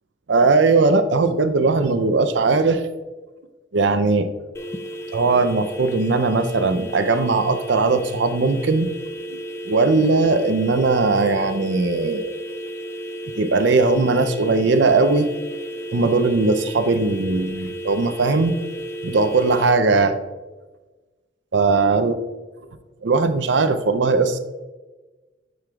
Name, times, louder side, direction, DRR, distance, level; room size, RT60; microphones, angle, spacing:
voice 1, 0.3-2.8 3.7-4.3 5.1-8.9 9.3-12.3 13.4-15.3 15.9-18.5 19.0-20.2 21.5-22.1 23.0-24.4, right 3 dB, 65° right, 10 dB, 0.5 m, -19 dB
sound 1, 4.5-19.7, right 1 dB, 15° left, 0.4 m, -33 dB
7.5 x 6.6 x 2.4 m, 1.2 s
head